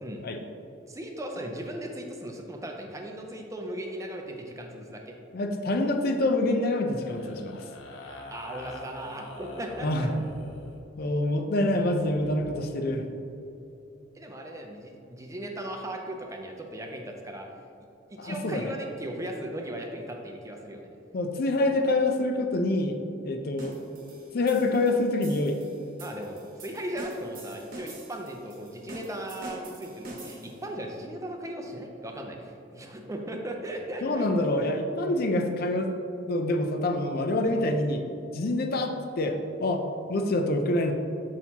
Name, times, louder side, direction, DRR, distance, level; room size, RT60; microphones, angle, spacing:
voice 1, 0.9-5.2 8.0-10.1 14.1-17.5 18.1-20.9 26.0-34.2 37.4-37.6, right 1 dB, 15° right, 2 dB, 0.5 m, -37 dB
voice 2, 5.3-7.6 9.8-10.1 11.0-13.1 18.2-18.7 21.1-22.9 23.2-23.8 24.3-25.6 34.0-35.9 36.3-38.0 38.3-39.8 40.1-40.9, left 2 dB, 55° left, 5 dB, 0.5 m, -26 dB
sound 1, 6.9-10.8 11.7-12.4, left 2 dB, 85° left, 0.7 m, -45 dB
sound 2, 23.6-30.7, right 2 dB, 50° right, 1.1 m, -45 dB
6.3 x 5.6 x 2.8 m, 2.8 s
head